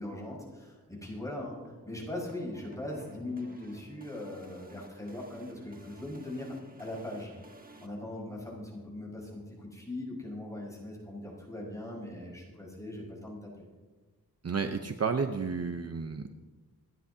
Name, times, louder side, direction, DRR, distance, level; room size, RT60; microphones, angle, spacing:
voice 1, 0.0-1.6 1.8-7.3 7.8-13.7, left 1 dB, 10° left, -4 dB, 5.4 m, -40 dB
sound 1, 1.0-7.9, right 1 dB, 25° right, 1.4 m, -55 dB
voice 2, 14.4-16.3, right 5 dB, 45° right, 6 dB, 0.8 m, -31 dB
26.5 x 10.5 x 2.8 m, 1.3 s
wide cardioid pair, 90°, 36 cm